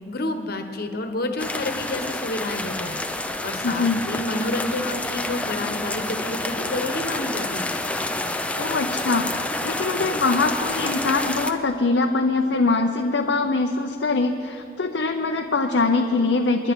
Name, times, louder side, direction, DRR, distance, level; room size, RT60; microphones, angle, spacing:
voice 1, 0.1-3.0 3.4-7.8, left 2 dB, 60° left, 6 dB, 1.3 m, -29 dB
sound 1, 1.4-11.5, left 2 dB, 10° left, 0.6 m, -28 dB
voice 2, 3.6-4.0 8.6-16.7, left 3 dB, 90° left, 3 dB, 0.8 m, -23 dB
29.0 x 11.0 x 3.7 m, 2.8 s
head